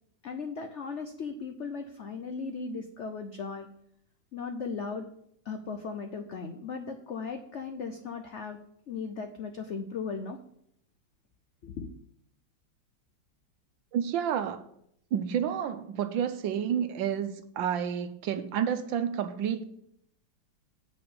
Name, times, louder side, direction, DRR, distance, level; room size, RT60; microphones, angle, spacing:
voice 1, 0.2-3.7 4.3-5.1 5.4-8.6 8.9-10.4 11.6-11.9, left 5 dB, 75° left, 6 dB, 0.6 m, -37 dB
voice 2, 13.9-14.6 15.1-19.6, right 8 dB, 80° right, 10 dB, 1.5 m, -30 dB
8.6 x 4.8 x 6.9 m, 0.72 s
omnidirectional pair, 2.1 m